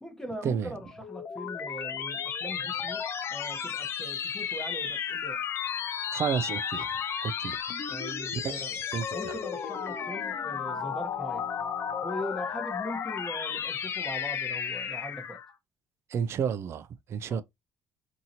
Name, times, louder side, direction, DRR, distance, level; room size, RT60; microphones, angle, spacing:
voice 1, 0.0-3.0 3.3-5.4 7.9-8.8 9.1-11.5 12.0-15.4 17.3-17.4, left 1 dB, 10° left, 0.9 m, -40 dB
sound 1, 0.8-15.5, left 7 dB, 50° left, 0.5 m, -33 dB
voice 2, 6.1-6.9 7.2-7.6 8.9-9.3 16.1-17.4, right 7 dB, 55° right, 0.4 m, -31 dB
2.7 x 2.7 x 2.7 m
supercardioid pair, 80°, 6 cm